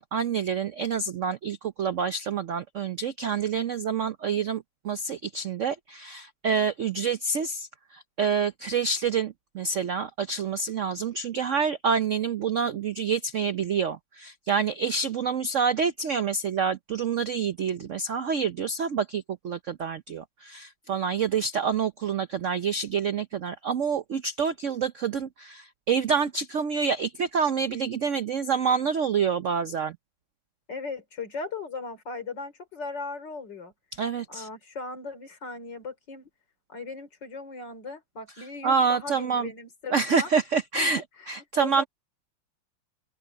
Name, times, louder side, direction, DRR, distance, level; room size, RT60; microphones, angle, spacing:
voice 1, 0.0-7.7 7.9-30.0 34.0-34.5 38.6-39.5 39.9-41.0 41.3-41.8, right 6 dB, 80° right, 0.6 m, -27 dB
voice 2, 30.7-33.7 34.3-36.3 36.7-40.3 40.7-41.9, left 3 dB, 55° left, 4.1 m, -38 dB
open air
omnidirectional pair, 2.3 m